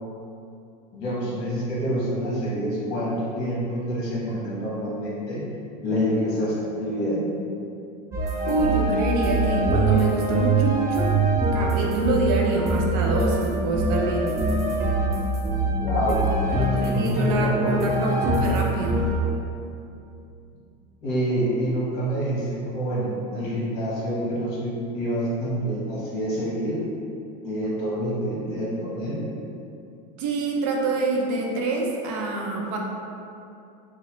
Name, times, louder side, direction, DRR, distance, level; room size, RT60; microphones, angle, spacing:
voice 1, 0.9-5.4 5.8-7.2 15.8-16.2 16.8-17.8 21.0-26.8 27.4-29.2, equal, 55° left, -7 dB, 1.2 m, -27 dB
sound 1, 8.1-19.3, right 2 dB, 15° right, 0.3 m, -24 dB
voice 2, 8.4-11.1 11.5-14.4 16.5-19.0 30.2-32.8, right 2 dB, 70° right, -1 dB, 0.6 m, -26 dB
3.8 x 2.0 x 3.0 m, 2.6 s
cardioid pair, 150°, 21 cm